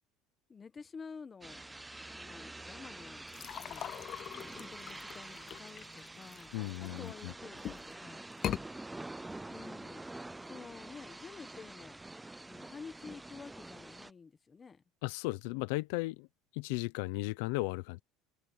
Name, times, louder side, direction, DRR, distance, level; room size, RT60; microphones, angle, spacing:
voice 1, 0.5-1.6 2.1-3.9 4.4-8.3 9.5-10.1 10.5-12.0 12.5-14.8, left 5 dB, 20° left, 1.3 m, -50 dB
sound 1, 1.4-14.1, right 2 dB, 5° right, 0.4 m, -47 dB
sound 2, 3.3-7.1 7.6-7.9 8.3-8.6, left 11 dB, 40° left, 0.6 m, -41 dB
voice 2, 6.5-7.3 15.0-16.3 16.5-18.0, left 22 dB, 85° left, 0.8 m, -35 dB
cardioid pair, 145°, 0 cm